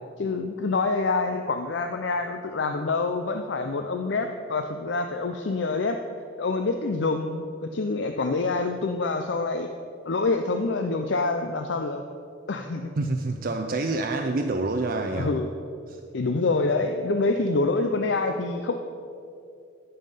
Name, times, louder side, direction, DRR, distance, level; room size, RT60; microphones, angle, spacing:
voice 1, 0.2-6.0 6.4-9.7 10.1-12.0 12.5-12.9 15.2-15.5 16.1-18.7, left 3 dB, 65° left, 6 dB, 0.5 m, -26 dB
voice 2, 13.0-15.3 15.9-16.0, right 2 dB, 50° right, 4 dB, 0.5 m, -27 dB
14.0 x 5.6 x 5.5 m, 2.5 s
head